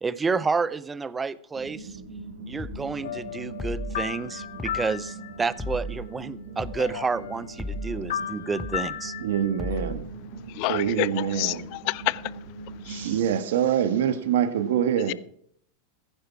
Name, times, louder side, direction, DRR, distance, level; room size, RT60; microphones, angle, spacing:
voice 1, 0.0-2.0 2.5-9.1, right 4 dB, 15° right, 0.6 m, -30 dB
sound 1, 1.6-13.3, right 3 dB, 60° right, 2.7 m, -41 dB
sound 2, 2.6-2.8 3.6-4.0 4.6-4.8 5.6-6.0 6.6-6.8 7.6-8.0 8.6-8.8 9.6-10.0, left 1 dB, 10° left, 1.0 m, -34 dB
sound 3, 3.0-5.8 6.2-6.3 6.6-10.0, left 9 dB, 80° left, 1.0 m, -36 dB
voice 2, 9.2-10.1 10.7-11.6 12.9-15.1, right 9 dB, 75° right, 1.7 m, -25 dB
voice 3, 10.6-11.1 11.4-11.5 11.9-12.2 12.9-13.0, left 23 dB, 50° left, 0.5 m, -27 dB
15.0 x 9.9 x 4.8 m
supercardioid pair, 130°, 0 cm